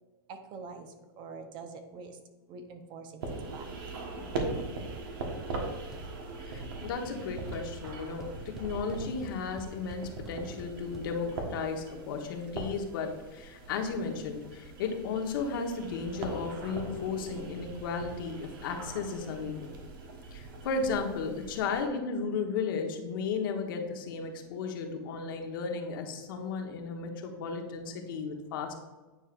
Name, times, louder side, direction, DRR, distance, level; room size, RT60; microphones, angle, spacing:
voice 1, 0.3-0.9 1.2-2.1 2.5-3.7, right 4 dB, 40° right, 7 dB, 0.8 m, -45 dB
sound 1, 3.2-21.9, right 3 dB, 70° right, 1.4 m, -41 dB
sound 2, 5.9-6.3 6.5-6.9 7.2-7.3 7.5-11.0, equal, 5° right, 0.7 m, -48 dB
voice 2, 6.5-19.7 20.3-28.7, left 5 dB, 70° left, 3 dB, 1.1 m, -34 dB
9.1 x 4.6 x 2.5 m, 1.2 s
hypercardioid pair, 120°, 12 cm